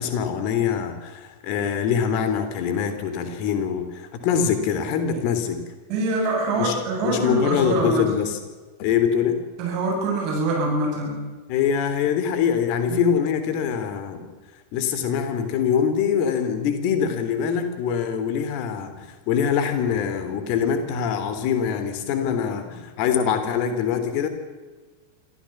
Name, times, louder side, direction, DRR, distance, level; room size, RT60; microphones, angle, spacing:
voice 1, 0.0-5.6 6.6-6.8 7.0-8.4 8.8-9.4 11.5-14.3 14.7-24.3, left 7 dB, 45° left, 8 dB, 3.3 m, -24 dB
voice 2, 5.9-8.1 9.6-11.2 12.9-13.1, right 2 dB, 40° right, 0 dB, 7.7 m, -24 dB
25.5 x 15.5 x 7.3 m, 1.3 s
figure-of-eight pair, 90°, 0 cm